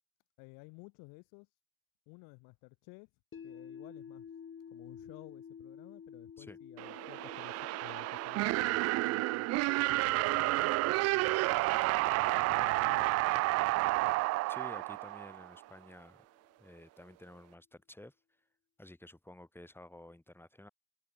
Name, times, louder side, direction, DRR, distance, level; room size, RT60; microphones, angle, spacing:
voice 1, 0.4-1.5 2.1-3.1 3.4-4.2 4.7-9.5 9.8-11.4 12.2-13.3, left 31 dB, 70° left, 2.8 m, -54 dB
sound 1, 3.3-15.4, left 7 dB, 35° left, 3.5 m, -53 dB
sound 2, 6.8-15.6, right 21 dB, 45° right, 0.4 m, -30 dB
voice 2, 14.5-16.2 16.6-18.1 18.8-20.7, left 1 dB, 5° left, 4.6 m, -52 dB
hypercardioid pair, 60°, 35 cm